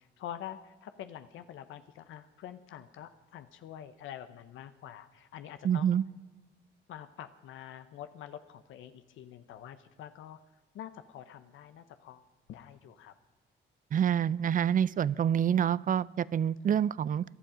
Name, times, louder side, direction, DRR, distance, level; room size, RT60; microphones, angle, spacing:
voice 1, 0.0-6.0 6.9-10.4 10.7-13.1, left 10 dB, 80° left, 10 dB, 0.9 m, -46 dB
voice 2, 5.6-6.0 13.9-17.2, right 9 dB, 45° right, 21 dB, 0.4 m, -27 dB
18.0 x 12.0 x 5.0 m, 1.2 s
cardioid pair, 90°, 20 cm